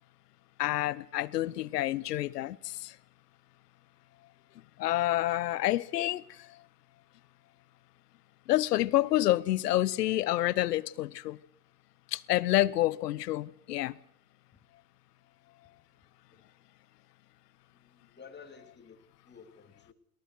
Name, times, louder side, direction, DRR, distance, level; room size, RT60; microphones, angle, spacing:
voice 1, 0.6-2.9 4.8-6.5 8.5-11.4 12.1-14.0, left 15 dB, 85° left, 0.9 m, -28 dB
voice 2, 17.7-19.9, left 6 dB, 20° left, 3.2 m, -53 dB
22.5 x 18.5 x 6.2 m
hypercardioid pair, 80°, 47 cm